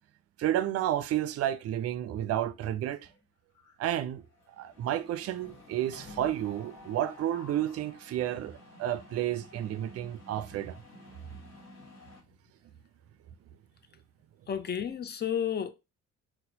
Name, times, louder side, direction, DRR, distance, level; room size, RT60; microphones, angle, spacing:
voice 1, 0.4-3.0 3.8-4.2 4.6-10.8, right 12 dB, 55° right, 0.4 m, -31 dB
Mechanisms, 2.6-3.2 3.6-3.8 4.0-12.2, left 2 dB, 75° left, 1.4 m, -51 dB
voice 2, 14.5-15.7, left 8 dB, 35° left, 0.5 m, -31 dB
4.1 x 2.2 x 2.7 m
cardioid pair, 90°, 30 cm